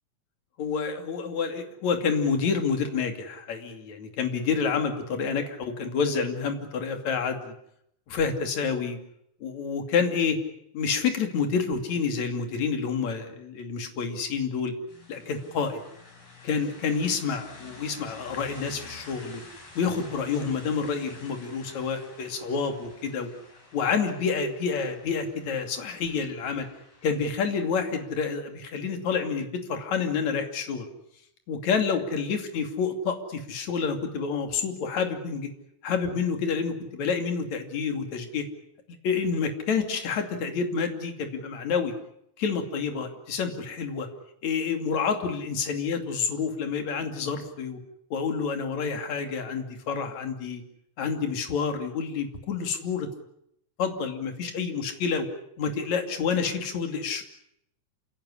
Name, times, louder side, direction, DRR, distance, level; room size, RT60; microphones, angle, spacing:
voice 1, 0.6-7.5 8.1-9.0 9.4-10.4 10.7-14.7 15.1-15.8 16.4-19.4 19.8-23.3 23.7-26.7 27.0-30.9 31.5-35.5 35.8-38.5 39.0-41.9 42.4-44.1 44.4-47.8 48.1-50.6 51.0-53.1 53.8-55.3 55.6-57.2, left 5 dB, 60° left, 6 dB, 3.9 m, -28 dB
sound 1, 14.9-28.3, left 2 dB, 85° left, 8.4 m, -49 dB
28.0 x 17.5 x 10.0 m, 0.76 s
omnidirectional pair, 3.7 m